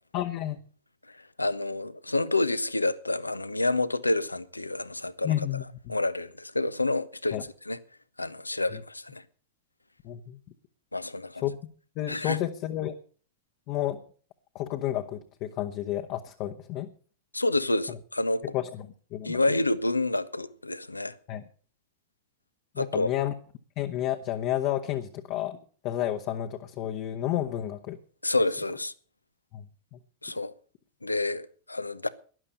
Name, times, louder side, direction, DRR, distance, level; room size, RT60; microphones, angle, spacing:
voice 1, 0.1-0.6 5.2-6.0 7.3-7.4 8.7-8.8 10.0-10.4 11.4-11.6 12.0-12.9 13.7-14.0 14.5-16.9 17.9-18.0 18.5-18.8 19.1-19.4 21.3-21.4 22.7-23.3 23.8-25.6 25.8-28.0 29.5-29.6 29.9-30.0, left 12 dB, 40° left, 1.0 m, -31 dB
voice 2, 1.4-5.4 5.9-7.8 8.2-9.2 10.9-11.4 12.1-12.4 17.3-18.4 19.2-21.1 22.8-23.1 28.2-28.9 30.2-30.5 31.0-32.1, left 2 dB, 85° left, 0.8 m, -28 dB
12.5 x 11.0 x 6.5 m
figure-of-eight pair, 90°, 0 cm